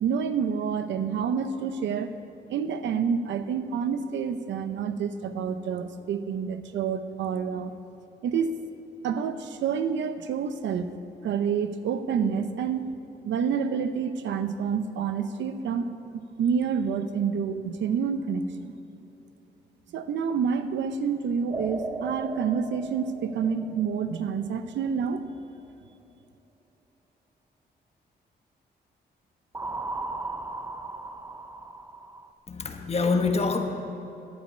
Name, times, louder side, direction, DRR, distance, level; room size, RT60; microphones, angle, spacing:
voice 1, 0.0-2.2 2.5-7.7 8.2-8.6 9.0-10.9 11.2-12.9 13.2-18.7 19.9-25.3, right 6 dB, 90° right, 10 dB, 0.8 m, -28 dB
sound 1, 21.5-24.7 29.5-32.3, right 2 dB, 15° right, 0.7 m, -37 dB
voice 2, 32.5-33.6, left 4 dB, 35° left, 5 dB, 1.2 m, -25 dB
11.0 x 9.5 x 8.7 m, 2.9 s
cardioid pair, 120°, 18 cm